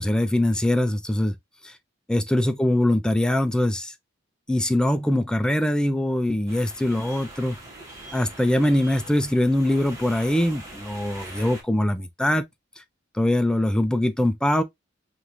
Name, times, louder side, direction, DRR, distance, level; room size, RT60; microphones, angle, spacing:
voice 1, 0.0-1.3 1.6-1.7 2.1-3.9 4.5-7.6 8.1-12.4 13.1-14.6, left 1 dB, 5° left, 0.3 m, -22 dB
sound 1, 6.5-11.6, right 1 dB, 15° right, 1.2 m, -42 dB
5.2 x 2.4 x 3.0 m
head